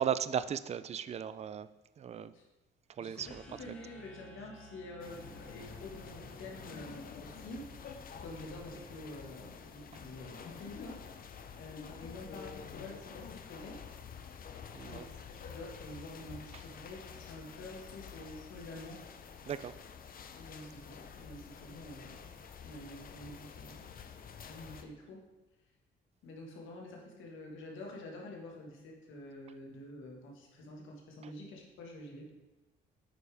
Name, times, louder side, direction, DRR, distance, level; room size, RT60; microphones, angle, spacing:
voice 1, 0.0-1.7 2.0-2.3 3.0-3.4 14.7-15.1 19.5-19.7, right 8 dB, 35° right, 14 dB, 0.3 m, -36 dB
voice 2, 3.0-11.0 11.5-13.8 14.8-19.0 20.3-22.3 22.6-23.9 24.4-25.2 26.2-32.3, left 1 dB, 80° left, 0 dB, 1.7 m, -48 dB
sound 1, 3.1-9.2, right 1 dB, 5° left, 1.3 m, -55 dB
sound 2, 5.0-24.8, left 6 dB, 45° left, 0.6 m, -49 dB
8.6 x 5.0 x 3.5 m, 1.0 s
cardioid pair, 90°, 20 cm